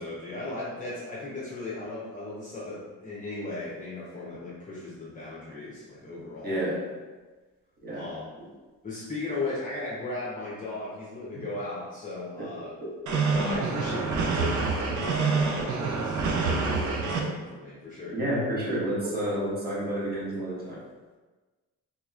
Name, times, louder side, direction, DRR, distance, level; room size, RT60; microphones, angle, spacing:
voice 1, 0.0-6.6 7.9-8.2 8.8-12.7 13.3-18.1, left 2 dB, 25° left, -8 dB, 0.8 m, -36 dB
voice 2, 6.4-6.9 7.8-8.1 11.3-11.4 12.4-12.5 12.8-13.7 18.1-20.8, right 1 dB, 30° right, -6 dB, 1.3 m, -30 dB
sound 1, 13.1-17.2, right 4 dB, 70° right, 0.6 m, -27 dB
3.5 x 2.9 x 2.5 m, 1.3 s
cardioid pair, 90°, 30 cm